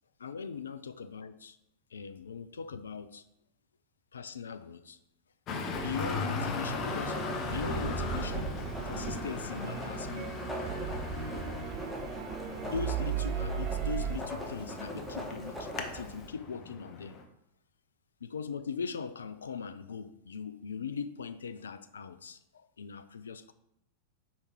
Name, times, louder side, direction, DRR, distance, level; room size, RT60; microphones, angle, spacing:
voice 1, 0.2-1.6 1.9-3.2 4.1-5.0 5.7-7.2 7.5-8.5 8.8-10.4 12.6-17.2 18.2-23.5, left 6 dB, 70° left, 0.3 m, -40 dB
Traffic noise roadway noise, 5.5-17.2, left 4 dB, 35° left, 0.7 m, -39 dB
sound 1, 5.8-14.2, right 9 dB, 40° right, 0.5 m, -37 dB
Writing, 6.9-16.3, equal, 5° left, 1.1 m, -42 dB
4.9 x 4.2 x 4.7 m
figure-of-eight pair, 90°, 0 cm